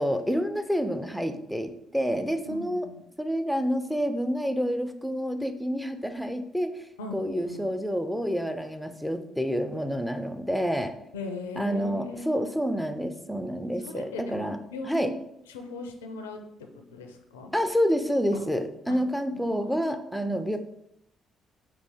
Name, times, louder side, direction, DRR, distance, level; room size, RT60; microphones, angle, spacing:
voice 1, 0.0-2.9 3.2-6.8 7.1-10.9 11.6-14.6 14.9-15.1 17.5-20.6, equal, ahead, 8 dB, 0.5 m, -28 dB
voice 2, 2.5-3.0 7.0-7.7 11.1-12.6 13.8-15.2 15.5-17.5 18.3-18.4 18.9-19.0 19.3-20.4, left 3 dB, 85° left, 5 dB, 0.4 m, -39 dB
4.1 x 2.9 x 3.4 m, 0.79 s
hypercardioid pair, 45°, 0 cm